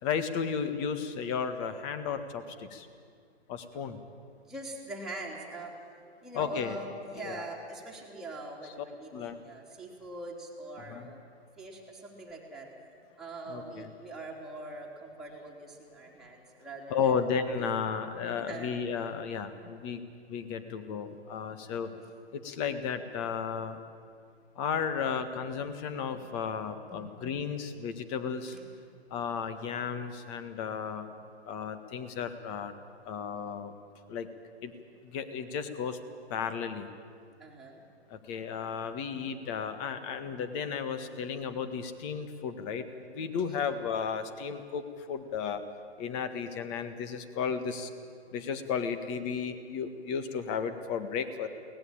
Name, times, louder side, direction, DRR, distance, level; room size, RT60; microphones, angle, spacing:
voice 1, 0.0-2.9 3.5-4.0 6.3-6.8 7.2-7.4 8.6-8.8 9.1-9.4 10.8-11.1 13.5-13.9 16.9-21.9 22.3-23.8 24.5-28.6 29.1-31.1 31.4-32.7 33.0-33.7 34.1-34.3 34.6-34.7 35.0-36.0 36.3-36.9 38.1-45.6 46.0-47.9 48.3-51.5, left 6 dB, 30° left, 10 dB, 1.6 m, -34 dB
voice 2, 4.5-5.7 6.2-11.2 11.6-12.7 13.2-17.2 17.6-17.7 18.3-18.8 21.6-22.0 26.9-27.0 28.5-28.6 37.4-37.8 43.4-43.6, right 2 dB, ahead, -4 dB, 3.3 m, -43 dB
23.5 x 18.5 x 8.9 m, 2.2 s
hypercardioid pair, 145°, 33 cm